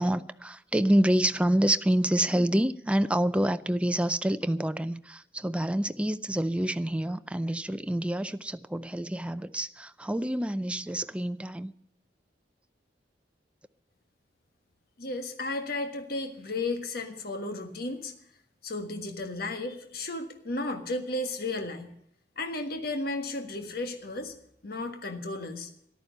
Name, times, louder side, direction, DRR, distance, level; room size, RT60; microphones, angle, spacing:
voice 1, 0.0-11.7, right 1 dB, 5° right, 0.4 m, -27 dB
voice 2, 15.0-18.1 18.6-21.9 22.4-24.3 24.6-25.7, left 2 dB, 60° left, 1.5 m, -34 dB
13.5 x 11.5 x 6.7 m
head